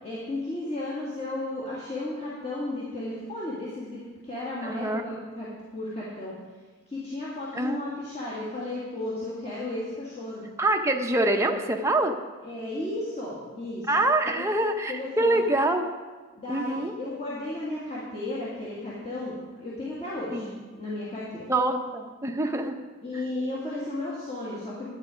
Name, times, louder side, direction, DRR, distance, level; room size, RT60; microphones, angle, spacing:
voice 1, 0.0-6.3 6.9-10.4 12.4-14.5 14.9-15.4 16.4-20.5 20.8-21.5 23.0-24.9, left 2 dB, 30° left, -8 dB, 2.2 m, -34 dB
voice 2, 4.6-5.0 7.5-7.8 10.6-12.2 13.9-15.9 16.5-16.9 20.3-20.6 21.5-22.8, right 2 dB, 15° right, 3 dB, 0.8 m, -25 dB
11.5 x 9.1 x 5.1 m, 1.4 s
head